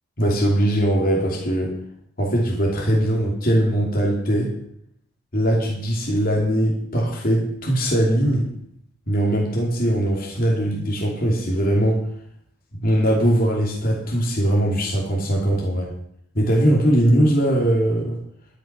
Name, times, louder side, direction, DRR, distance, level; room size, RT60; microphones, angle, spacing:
voice 1, 0.2-1.7 2.2-4.5 5.3-8.5 9.1-12.0 12.8-15.9 16.3-18.2, right 1 dB, 45° left, -3 dB, 3.0 m, -20 dB
12.5 x 10.0 x 6.0 m, 0.67 s
head